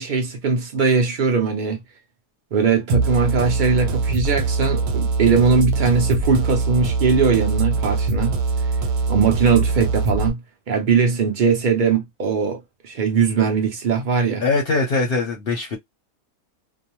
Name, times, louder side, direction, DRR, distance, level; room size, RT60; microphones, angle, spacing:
voice 1, 0.0-1.8 2.5-8.3 9.1-10.4 10.7-14.4, right 5 dB, 50° right, 0.5 m, -20 dB
sound 1, 2.9-10.3, right 4 dB, 85° right, 1.2 m, -22 dB
voice 2, 14.4-15.8, left 3 dB, 50° left, 0.7 m, -21 dB
2.6 x 2.0 x 2.9 m
omnidirectional pair, 1.6 m